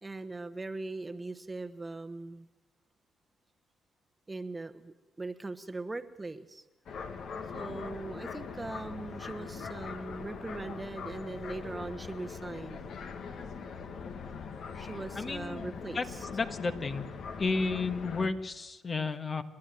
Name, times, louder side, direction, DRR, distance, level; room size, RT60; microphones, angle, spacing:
voice 1, 0.0-2.5 4.3-6.6 7.5-12.9 14.8-16.3, right 3 dB, 20° right, 9 dB, 1.1 m, -40 dB
sound 1, 6.9-18.3, left 5 dB, 65° left, 1.9 m, -41 dB
voice 2, 15.1-16.0 16.3-17.1 17.4-19.4, left 4 dB, 35° left, 9 dB, 1.4 m, -33 dB
29.0 x 11.0 x 9.1 m, 1.0 s
cardioid pair, 90°, 0 cm